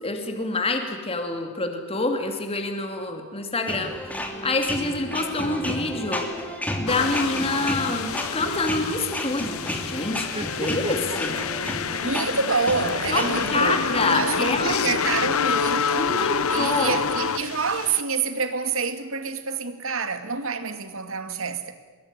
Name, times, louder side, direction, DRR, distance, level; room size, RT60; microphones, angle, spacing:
voice 1, 0.0-3.9 4.4-6.3 6.8-10.3 10.5-11.4 13.1-13.2 13.5-14.9 16.0-17.0, left 2 dB, 25° left, 3.0 m, -26 dB
sound 1, 3.7-13.6, left 1 dB, 5° left, 2.9 m, -32 dB
sound 2, 6.9-18.0, left 6 dB, 75° left, 0.9 m, -28 dB
sound 3, 10.0-12.6 12.9-14.2 14.5-14.6 14.9-15.0 15.4-15.5 16.5-17.5, right 2 dB, 25° right, 2.2 m, -38 dB
voice 2, 12.0-13.8 14.1-16.2 16.5-21.7, right 4 dB, 65° right, 2.2 m, -27 dB
24.5 x 22.0 x 10.0 m
head